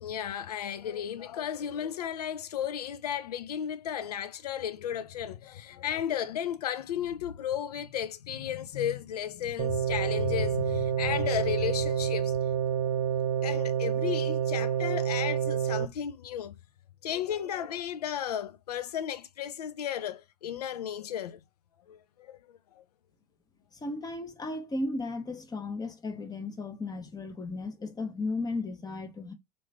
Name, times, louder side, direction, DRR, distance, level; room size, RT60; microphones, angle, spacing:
voice 1, 0.0-12.4 13.4-16.6 17.0-21.4 21.9-22.4 22.7-22.8, left 9 dB, 85° left, 0.5 m, -34 dB
sound 1, 9.6-15.9, right 9 dB, 60° right, 0.7 m, -28 dB
voice 2, 23.8-29.3, left 2 dB, 20° left, 1.0 m, -35 dB
3.0 x 2.6 x 3.4 m
hypercardioid pair, 90°, 19 cm